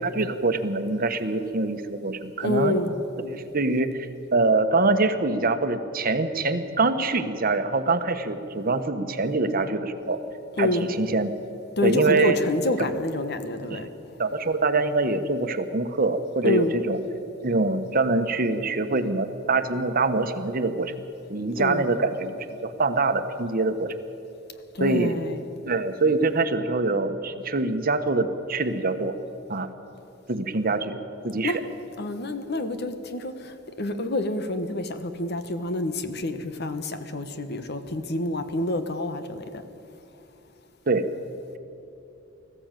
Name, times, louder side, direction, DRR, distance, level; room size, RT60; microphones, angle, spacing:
voice 1, 0.0-2.8 3.2-4.0 4.3-10.2 10.6-11.3 11.8-12.4 12.8-12.9 13.7-13.8 14.2-17.0 17.4-20.9 21.3-23.9 24.8-25.2 25.7-29.2 29.5-29.7 30.3-31.0 31.2-31.6 40.9-41.1, right 3 dB, 50° right, 9 dB, 1.1 m, -24 dB
voice 2, 2.4-2.9 10.6-10.9 11.8-13.9 16.4-16.7 21.6-21.8 24.7-25.4 31.4-31.6 32.0-39.5, left 2 dB, 60° left, 9 dB, 1.3 m, -27 dB
19.5 x 14.5 x 9.1 m, 2.8 s
head